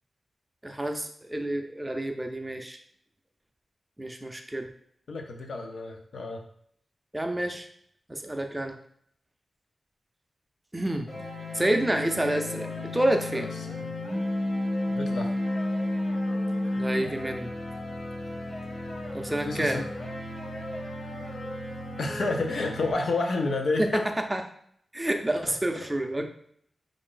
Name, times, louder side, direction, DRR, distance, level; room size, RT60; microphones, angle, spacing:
voice 1, 0.6-2.8 4.0-4.7 7.1-7.7 8.1-8.8 10.7-11.1 11.5-13.5 16.8-17.5 19.1-19.8 23.8-23.9 24.3-24.4 24.9-26.3, right 1 dB, 10° right, 4 dB, 0.5 m, -28 dB
voice 2, 5.1-6.4 13.3-13.9 14.9-15.3 19.4-19.9 22.0-24.1 25.5-25.6, left 3 dB, 70° left, 2 dB, 0.7 m, -30 dB
sound 1, 11.1-22.9, left 1 dB, 50° left, 1.1 m, -32 dB
4.7 x 2.6 x 3.8 m, 0.66 s
wide cardioid pair, 135°, 0 cm